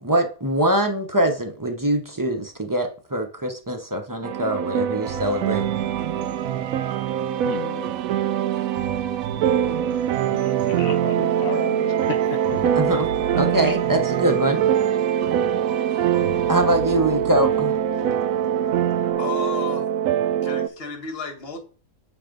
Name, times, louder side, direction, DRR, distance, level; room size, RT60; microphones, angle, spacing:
voice 1, 0.0-5.7 12.7-14.7 16.5-17.8, right 1 dB, 25° right, 0.4 m, -23 dB
sound 1, 4.2-20.7, right 10 dB, 70° right, 0.9 m, -23 dB
sound 2, 5.0-19.1, right 9 dB, 85° right, 1.3 m, -34 dB
voice 2, 7.4-7.8 10.3-12.2 12.5-12.6 13.2-13.5, left 9 dB, 70° left, 0.8 m, -34 dB
voice 3, 19.1-19.9 20.4-21.6, left 5 dB, 40° left, 1.3 m, -32 dB
6.8 x 4.1 x 5.2 m
omnidirectional pair, 1.8 m